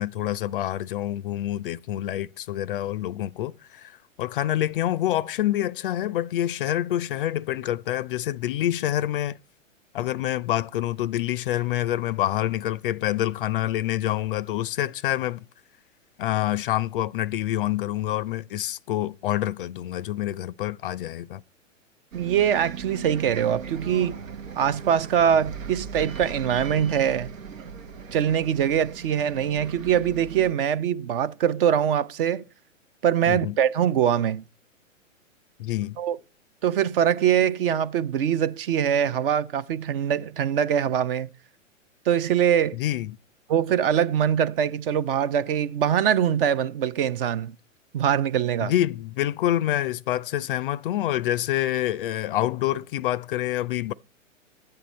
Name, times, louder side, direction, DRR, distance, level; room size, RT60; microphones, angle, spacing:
voice 1, 0.0-9.4 9.9-15.4 16.2-21.4 33.3-33.6 35.6-36.0 42.7-43.1 48.6-53.9, left 13 dB, 45° left, 0.5 m, -27 dB
voice 2, 22.1-24.1 24.6-27.3 28.1-32.4 33.0-34.4 36.0-36.2 36.6-41.3 42.1-42.8 43.5-47.5 47.9-48.7, right 9 dB, 45° right, 0.6 m, -23 dB
Bus, 22.1-30.5, right 6 dB, 80° right, 1.0 m, -38 dB
12.0 x 8.9 x 4.2 m
hypercardioid pair, 120°, 39 cm